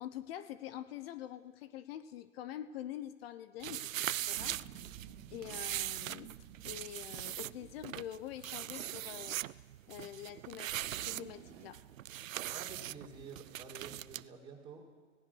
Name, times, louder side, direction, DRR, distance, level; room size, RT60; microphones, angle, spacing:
voice 1, 0.0-4.6 4.9-6.3 6.6-9.6 9.9-11.8, left 11 dB, 50° left, 13 dB, 0.9 m, -46 dB
sound 1, 3.6-14.2, right 13 dB, 85° right, 0.6 m, -41 dB
sound 2, 4.3-8.3 10.7-11.7, right 8 dB, 60° right, 2.5 m, -54 dB
voice 2, 12.5-14.9, right 5 dB, 10° right, -2 dB, 4.1 m, -50 dB
25.0 x 18.0 x 6.3 m, 1.4 s
hypercardioid pair, 135°, 39 cm